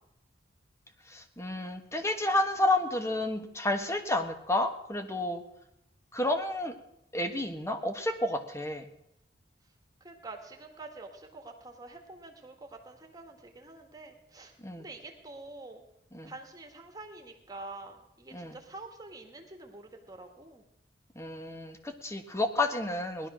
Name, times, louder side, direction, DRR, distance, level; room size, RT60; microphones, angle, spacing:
voice 1, 1.1-5.4 6.1-6.7 7.1-8.8 14.6-14.8 16.1-16.3 18.3-18.6 21.1-23.3, left 1 dB, 15° left, 7 dB, 1.4 m, -30 dB
voice 2, 10.0-15.8 16.2-20.6, right 2 dB, 20° right, 3 dB, 1.8 m, -47 dB
18.5 x 12.0 x 6.3 m, 0.79 s
head